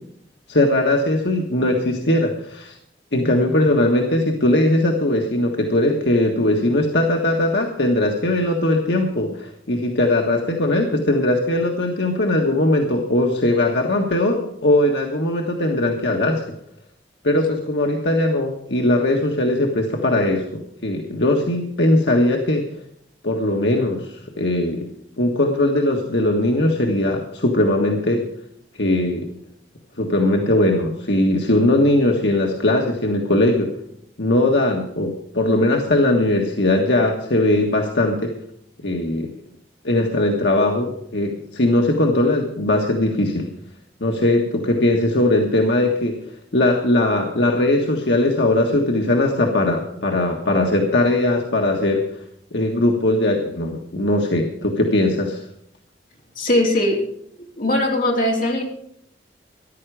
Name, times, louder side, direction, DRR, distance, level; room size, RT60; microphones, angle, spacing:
voice 1, 0.5-2.7 3.1-16.4 17.2-20.4 20.8-22.6 23.2-24.9 25.2-28.2 28.8-29.2 30.0-33.7 34.2-38.3 38.8-39.3 39.8-43.5 44.0-46.2 46.5-52.0 52.5-55.4, left 1 dB, 75° left, 1 dB, 1.6 m, -19 dB
voice 2, 56.4-57.0 57.6-58.6, left 1 dB, 50° left, 0 dB, 3.3 m, -19 dB
14.5 x 11.5 x 4.9 m, 0.71 s
head